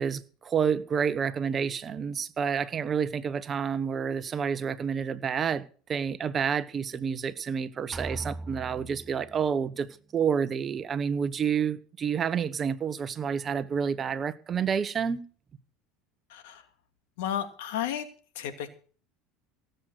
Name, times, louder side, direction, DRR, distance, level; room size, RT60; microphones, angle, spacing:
voice 1, 0.0-5.6 5.9-15.3, right 7 dB, 30° right, 14 dB, 1.2 m, -29 dB
sound 1, 7.9-9.8, right 2 dB, 10° right, 0.6 m, -40 dB
voice 2, 16.3-16.7 17.2-18.1 18.3-18.7, left 10 dB, 80° left, 9 dB, 2.5 m, -33 dB
17.5 x 7.9 x 6.5 m, 0.41 s
supercardioid pair, 110°, 0 cm